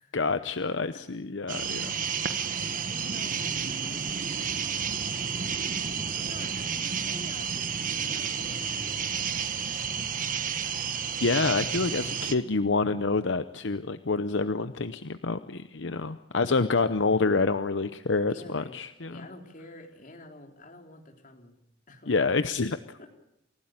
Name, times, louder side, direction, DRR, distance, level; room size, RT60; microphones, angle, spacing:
voice 1, 0.1-1.9 11.2-19.1 22.1-22.8, left 3 dB, 70° left, 11 dB, 0.8 m, -27 dB
sound 1, 1.5-12.4, right 6 dB, 45° right, 1.4 m, -31 dB
voice 2, 2.6-4.5 4.8-5.4 6.2-9.7 18.3-21.6 21.9-22.1 23.0-23.1, left 1 dB, 45° left, 3 dB, 3.8 m, -49 dB
28.5 x 16.5 x 9.0 m, 0.84 s
head